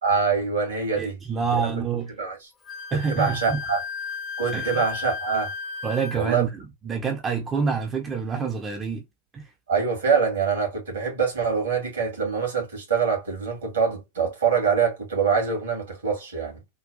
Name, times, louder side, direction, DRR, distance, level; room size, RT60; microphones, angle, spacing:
voice 1, 0.0-1.2 2.2-2.4 3.1-3.8 4.4-5.5 6.1-6.4 9.7-16.6, right 5 dB, 70° right, 2.1 m, -24 dB
voice 2, 1.0-2.1 2.9-3.6 4.5-4.8 5.8-9.0 9.3-9.5, right 5 dB, 20° right, 0.7 m, -27 dB
Wind instrument woodwind instrument, 2.7-6.4, left 5 dB, 20° left, 0.7 m, -34 dB
3.8 x 2.3 x 2.4 m
figure-of-eight pair, 90°, 0 cm